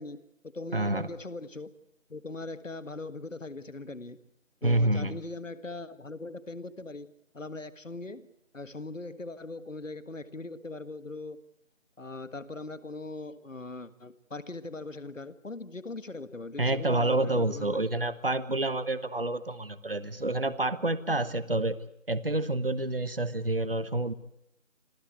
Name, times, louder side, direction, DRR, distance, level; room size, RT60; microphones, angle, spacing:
voice 1, 0.0-1.7 2.1-4.2 4.6-8.3 8.5-11.4 12.0-17.9, left 2 dB, 70° left, 13 dB, 1.8 m, -40 dB
voice 2, 0.7-1.1 4.6-5.2 16.6-21.8 22.1-24.1, right 2 dB, 45° right, 15 dB, 1.1 m, -28 dB
26.5 x 16.0 x 8.3 m, 0.81 s
figure-of-eight pair, 180°, 40 cm